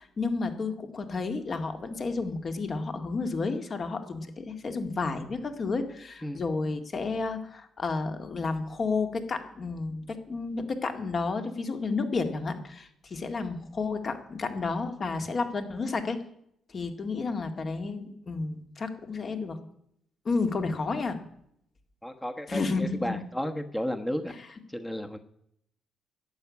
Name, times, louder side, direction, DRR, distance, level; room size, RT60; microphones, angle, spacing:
voice 1, 0.0-16.2 16.7-19.6 20.3-21.2 22.5-23.2, left 4 dB, 45° left, 7 dB, 2.1 m, -31 dB
voice 2, 22.0-24.3 24.7-25.2, equal, 10° left, 7 dB, 1.1 m, -33 dB
12.0 x 8.8 x 9.5 m, 0.73 s
cardioid pair, 90°, 0 cm